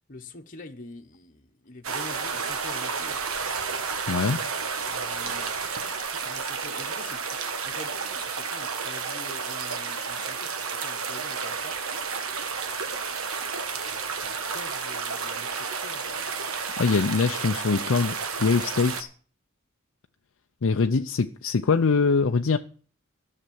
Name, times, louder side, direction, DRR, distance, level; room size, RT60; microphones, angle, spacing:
voice 1, 0.1-3.2 4.9-5.5 5.8-7.2 7.6-11.7 13.7-16.7 20.7-21.1, left 2 dB, 40° left, 1.1 m, -46 dB
sound 1, 1.8-19.0, right 5 dB, 80° right, 1.4 m, -31 dB
voice 2, 4.1-4.4 16.8-19.1 20.6-22.6, left 4 dB, 65° left, 0.5 m, -23 dB
13.0 x 6.7 x 7.6 m
head